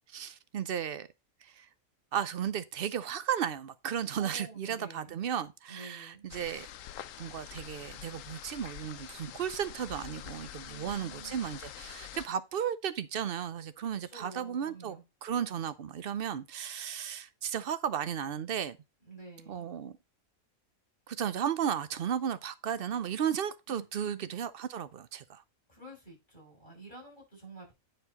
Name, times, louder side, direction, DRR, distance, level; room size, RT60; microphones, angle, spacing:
voice 1, 0.1-1.1 1.4-1.7 2.1-6.7 7.2-18.8 19.5-19.9 21.1-25.4, right 8 dB, 55° right, 0.7 m, -34 dB
voice 2, 4.2-5.2 5.7-6.2 10.6-11.5 13.9-15.0 19.0-19.7 23.7-24.3 25.7-27.7, right 3 dB, 35° left, 5.8 m, -49 dB
sound 1, 6.3-12.3, left 11 dB, 70° left, 1.0 m, -46 dB
9.7 x 4.5 x 4.0 m
omnidirectional pair, 1.4 m